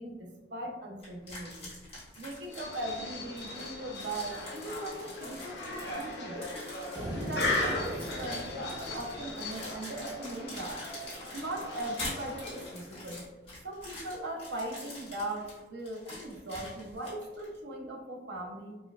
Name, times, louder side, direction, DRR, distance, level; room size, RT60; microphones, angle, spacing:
voice 1, 0.0-1.7 2.2-6.5 7.1-7.9 8.2-10.8 11.3-18.8, right 1 dB, 70° right, 0 dB, 0.6 m, -39 dB
sound 1, 1.0-3.0 3.4-17.6, left 2 dB, 35° left, 1.4 m, -45 dB
sound 2, 2.5-12.9, left 2 dB, 70° left, 0.6 m, -38 dB
sound 3, 6.9-10.3, right 1 dB, 20° right, 0.4 m, -41 dB
4.2 x 2.2 x 2.3 m, 1.1 s
head